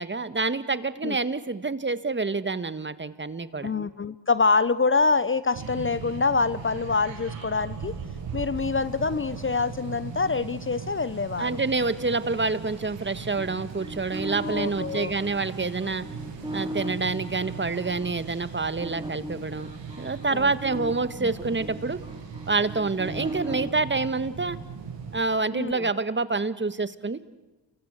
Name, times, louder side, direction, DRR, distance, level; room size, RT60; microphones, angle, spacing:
voice 1, 0.0-3.7 11.4-16.0 16.5-19.7 20.0-22.0 22.5-24.6 25.1-27.2, right 3 dB, 25° right, 12 dB, 1.6 m, -27 dB
voice 2, 3.6-8.0 8.3-11.5 14.4-15.1 20.3-20.5 25.5-25.9, left 4 dB, 30° left, 15 dB, 0.8 m, -25 dB
sound 1, 5.5-25.2, right 6 dB, 80° right, 7.9 m, -39 dB
sound 2, 13.4-18.1 18.8-23.7, right 1 dB, 10° right, 5.2 m, -37 dB
29.0 x 23.5 x 8.2 m, 1.1 s
cardioid pair, 60°, 44 cm